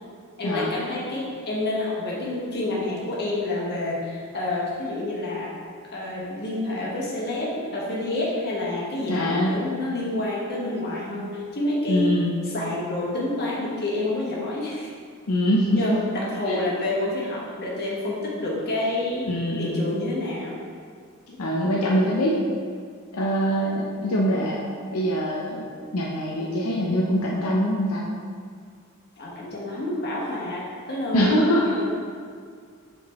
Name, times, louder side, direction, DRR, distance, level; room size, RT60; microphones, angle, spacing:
voice 1, 0.4-5.5 5.9-12.1 12.5-14.9 15.7-19.2 19.6-20.6 21.3-21.4 29.2-31.9, left 2 dB, 50° left, -5 dB, 1.5 m, -28 dB
voice 2, 9.1-9.6 11.9-12.3 15.3-15.9 16.5-16.6 19.3-19.8 21.4-22.4 23.1-24.6 24.9-25.6 25.9-28.1 31.1-31.8, equal, 85° left, -4 dB, 0.7 m, -23 dB
7.6 x 3.9 x 3.6 m, 2.1 s
head